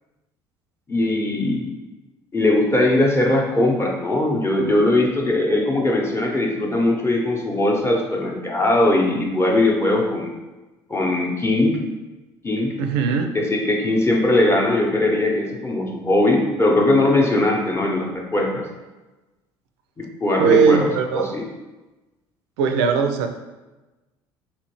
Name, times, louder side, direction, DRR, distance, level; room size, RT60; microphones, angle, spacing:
voice 1, 0.9-1.7 2.3-10.3 10.9-11.8 12.4-12.7 13.3-18.6 20.2-20.9 21.1-21.5, left 2 dB, 20° left, 0 dB, 0.8 m, -20 dB
voice 2, 12.8-13.3 20.4-21.3 22.6-23.3, right 6 dB, 70° right, 6 dB, 0.4 m, -19 dB
3.2 x 2.9 x 3.0 m, 1.1 s
hypercardioid pair, 60°, 13 cm